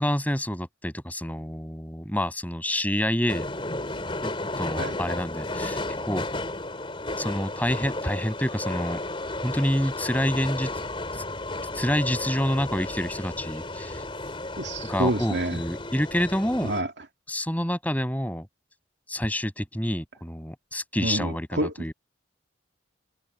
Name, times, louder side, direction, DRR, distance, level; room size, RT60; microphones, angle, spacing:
voice 1, 0.0-3.5 4.2-6.2 7.2-9.0 9.4-10.7 11.1-11.2 11.7-14.0 14.9-16.7 17.3-18.5 19.1-21.9, equal, 10° left, 6.2 m, -28 dB
sound 1, 3.3-16.8, left 2 dB, 25° left, 3.7 m, -33 dB
voice 2, 14.6-15.6 16.6-16.9 21.0-21.7, right 1 dB, 65° right, 2.7 m, -28 dB
head